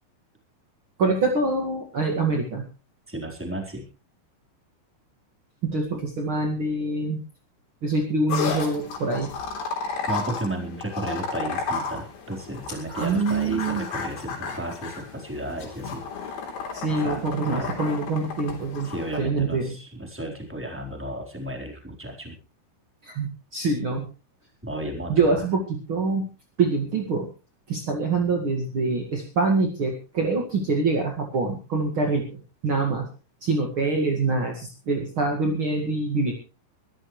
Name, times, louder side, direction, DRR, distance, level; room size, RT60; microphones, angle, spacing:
voice 1, 1.0-2.6 5.6-7.2 7.8-9.3 12.7-13.8 16.7-18.9 19.2-19.7 23.0-24.1 25.1-26.3 26.6-27.3 27.7-33.1 33.4-36.3, right 3 dB, 60° right, 2 dB, 1.3 m, -25 dB
voice 2, 3.1-3.8 10.1-16.0 17.0-17.7 18.8-22.3 24.6-25.4, right 1 dB, 5° right, 1 dB, 3.1 m, -33 dB
sound 1, 8.3-19.2, left 5 dB, 60° left, 5.4 m, -33 dB
23.5 x 13.5 x 3.2 m, 0.34 s
omnidirectional pair, 5.8 m